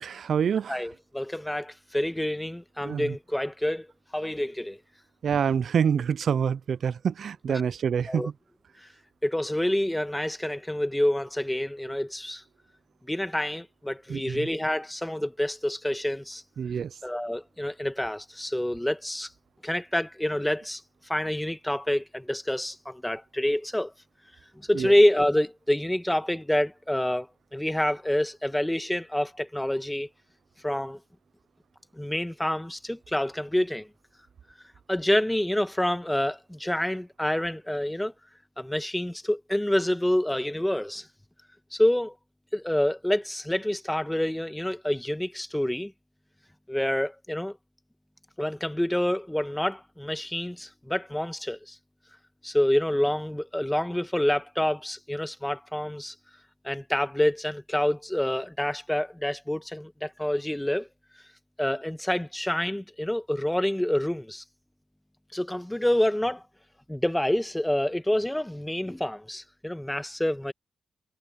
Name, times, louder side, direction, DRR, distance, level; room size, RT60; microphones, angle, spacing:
voice 1, 0.0-0.8 2.8-3.2 5.2-8.3 14.1-14.5 16.6-17.0 24.7-24.9, right 7 dB, 70° right, 0.4 m, -27 dB
voice 2, 0.7-3.9 4.1-4.8 7.5-7.6 8.1-8.3 9.2-12.4 13.1-16.4 17.0-19.3 19.6-20.8 21.1-23.9 24.7-27.3 27.5-30.1 30.6-31.0 32.0-33.9 34.9-38.1 38.6-41.1 41.7-42.1 42.5-45.9 46.7-47.6 48.4-51.8 52.4-56.1 56.6-60.9 61.6-64.4 65.3-66.4 66.9-70.5, left 1 dB, 10° left, 1.7 m, -27 dB
supercardioid pair, 55°, 0 cm